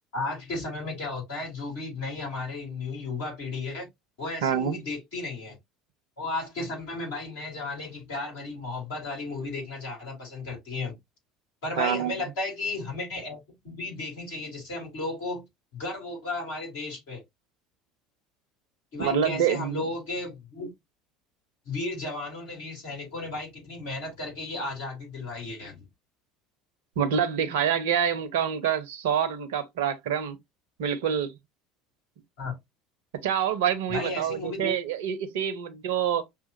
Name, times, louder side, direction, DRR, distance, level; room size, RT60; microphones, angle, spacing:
voice 1, 0.1-3.9 4.2-5.6 6.2-10.9 11.6-15.4 15.7-17.2 18.9-20.7 21.7-25.8 32.4-32.6 33.9-34.7, left 2 dB, 60° left, 2.3 m, -34 dB
voice 2, 4.4-4.8 11.8-12.2 19.0-19.8 27.0-30.4 30.8-31.3 33.2-36.2, right 8 dB, 65° right, 0.5 m, -26 dB
5.7 x 2.4 x 2.5 m
figure-of-eight pair, 65°, 0 cm